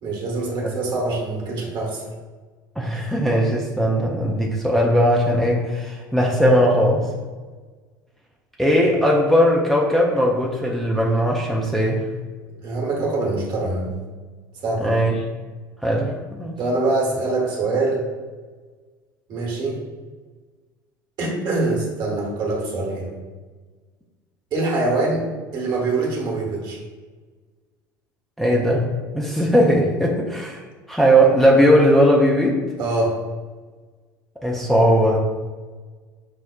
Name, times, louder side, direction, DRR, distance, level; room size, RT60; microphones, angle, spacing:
voice 1, 0.0-2.1 12.6-13.9 14.6-15.0 16.6-18.1 19.3-19.8 21.2-23.2 24.5-25.3 25.5-26.8 32.8-33.2, right 2 dB, 45° right, -2 dB, 1.0 m, -24 dB
voice 2, 2.8-7.1 8.6-12.1 14.8-15.1 15.8-16.5 28.4-28.9 29.1-30.6 30.9-32.6 34.4-35.2, equal, ahead, -3 dB, 0.4 m, -18 dB
5.0 x 2.0 x 2.3 m, 1.4 s
figure-of-eight pair, 70°, 11 cm